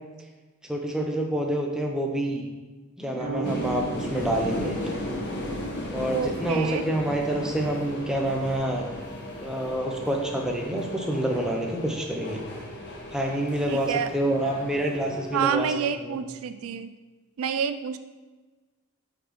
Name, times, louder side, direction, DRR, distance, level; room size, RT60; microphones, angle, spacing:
voice 1, 0.6-2.4 3.0-4.8 5.9-8.9 9.4-12.4 13.1-15.7 16.0-16.2, right 1 dB, 5° right, 0 dB, 0.6 m, -27 dB
sound 1, 3.2-5.5, right 5 dB, 30° right, 1.7 m, -36 dB
sound 2, 3.4-15.4, left 1 dB, 50° left, 1.1 m, -36 dB
voice 2, 6.1-6.9 13.7-14.1 15.3-16.9 17.4-18.0, right 7 dB, 70° right, 10 dB, 0.3 m, -28 dB
8.2 x 4.1 x 3.1 m, 1.3 s
head